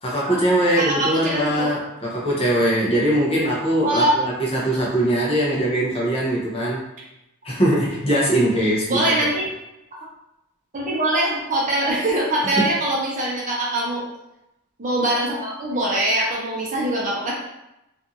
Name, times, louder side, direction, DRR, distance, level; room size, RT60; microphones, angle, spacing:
voice 1, 0.0-6.8 7.4-9.1 12.6-12.7, right 1 dB, 30° left, -5 dB, 0.6 m, -21 dB
voice 2, 0.8-1.7 3.8-4.2 8.9-9.4 10.7-14.0 14.8-17.3, right 1 dB, 40° right, -4 dB, 0.7 m, -22 dB
2.5 x 2.4 x 2.7 m, 0.90 s
head